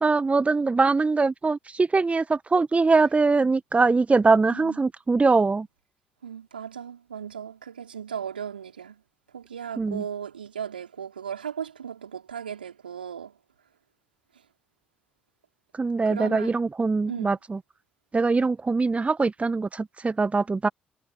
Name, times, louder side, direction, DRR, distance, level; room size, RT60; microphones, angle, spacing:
voice 1, 0.0-5.7 9.8-10.0 15.7-17.6 18.1-20.7, right 4 dB, 25° right, 1.5 m, -22 dB
voice 2, 6.2-9.0 9.3-13.3 16.1-16.5 17.1-17.3, right 8 dB, 80° right, 5.4 m, -36 dB
figure-of-eight pair, 45°, 5 cm